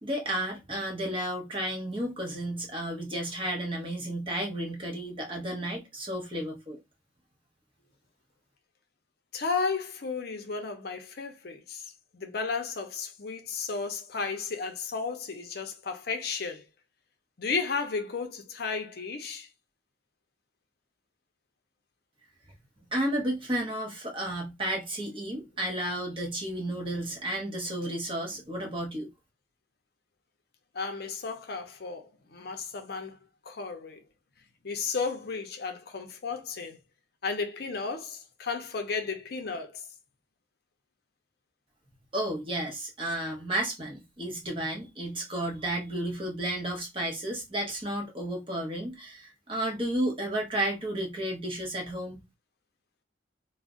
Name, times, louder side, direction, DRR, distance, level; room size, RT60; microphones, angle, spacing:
voice 1, 0.0-6.8 22.9-29.1 42.1-52.2, right 1 dB, 25° right, 0.9 m, -32 dB
voice 2, 9.3-16.6 17.4-19.5 30.7-33.2 33.4-34.1 34.6-36.8 37.2-39.9, left 4 dB, 55° left, 0.5 m, -34 dB
2.4 x 2.1 x 3.6 m
head